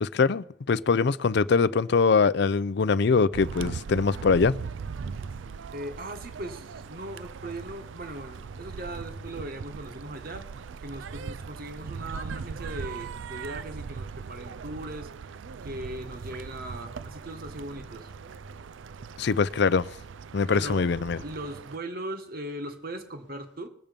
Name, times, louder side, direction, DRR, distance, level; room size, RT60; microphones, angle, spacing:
voice 1, 0.0-4.5 19.2-19.9 20.3-21.2, left 5 dB, 60° left, 0.5 m, -23 dB
sound 1, 3.3-21.8, right 5 dB, 80° right, 0.4 m, -40 dB
voice 2, 5.7-10.4 10.8-15.1 15.6-18.1 20.5-20.9 21.2-23.7, right 1 dB, 50° right, 1.6 m, -39 dB
21.0 x 7.3 x 5.2 m
head